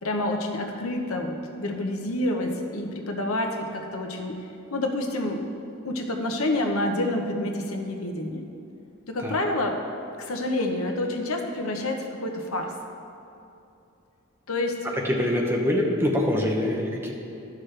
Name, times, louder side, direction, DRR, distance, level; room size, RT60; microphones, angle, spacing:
voice 1, 0.0-5.5 5.8-8.4 9.1-9.8 10.2-12.7 14.5-14.9, left 1 dB, 85° left, 3 dB, 0.9 m, -28 dB
voice 2, 14.9-17.1, left 1 dB, 10° right, -1 dB, 0.9 m, -24 dB
13.0 x 6.1 x 3.3 m, 2.8 s
head